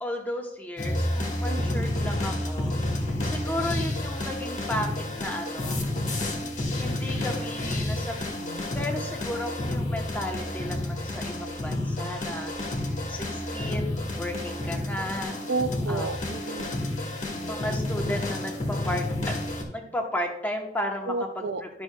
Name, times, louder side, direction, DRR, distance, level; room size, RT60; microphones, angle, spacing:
voice 1, 0.0-5.8 6.8-8.2 8.7-15.4 15.9-16.3 17.4-19.4 19.7-21.8, left 1 dB, 10° left, 1 dB, 1.0 m, -34 dB
sound 1, 0.8-19.6, left 1 dB, 40° left, 1.3 m, -30 dB
voice 2, 1.4-2.0 6.2-6.3 15.5-16.9 21.1-21.6, right 3 dB, 65° right, 10 dB, 0.4 m, -32 dB
11.5 x 6.0 x 2.3 m, 0.78 s
head